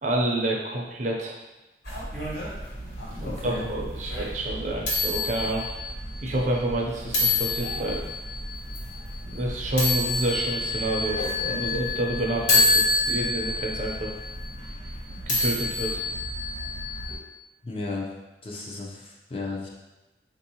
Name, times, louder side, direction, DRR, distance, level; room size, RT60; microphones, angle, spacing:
voice 1, 0.0-1.3 3.2-5.6 6.2-8.0 9.3-14.1 15.1-16.1, right 1 dB, 45° right, -1 dB, 0.5 m, -29 dB
sound 1, 1.8-17.2, left 2 dB, 70° left, 1.4 m, -28 dB
voice 2, 3.2-3.7 17.6-18.1 18.4-19.7, left 3 dB, 30° left, -2 dB, 0.5 m, -34 dB
4.5 x 2.6 x 2.8 m, 1.0 s
head